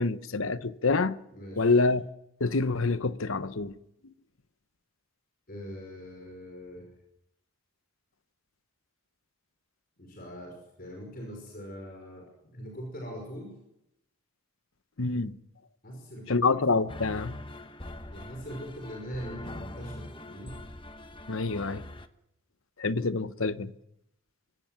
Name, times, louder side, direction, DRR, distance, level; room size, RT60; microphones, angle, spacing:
voice 1, 0.0-1.2 1.6-2.1 2.4-3.8 4.0-4.1 15.0-15.4 16.3-17.4 21.3-21.8 22.8-23.7, left 3 dB, 65° left, 0.9 m, -27 dB
voice 2, 1.3-1.7 5.5-6.9 10.0-13.6 15.8-16.8 18.1-20.6, equal, 40° left, 5.7 m, -42 dB
sound 1, 16.9-22.1, left 1 dB, 25° left, 1.0 m, -43 dB
25.0 x 17.0 x 9.4 m
head